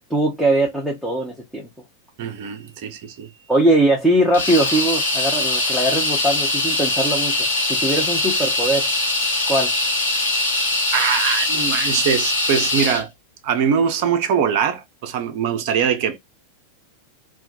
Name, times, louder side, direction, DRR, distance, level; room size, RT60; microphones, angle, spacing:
voice 1, 0.1-1.7 3.5-8.9 9.5-9.7, right 1 dB, 5° left, 0.7 m, -20 dB
voice 2, 2.2-3.3 10.9-13.1 13.4-16.2, right 7 dB, 45° right, 0.5 m, -22 dB
sound 1, 4.3-13.0, left 2 dB, 70° left, 1.1 m, -22 dB
2.2 x 2.1 x 2.7 m
figure-of-eight pair, 90°, 0 cm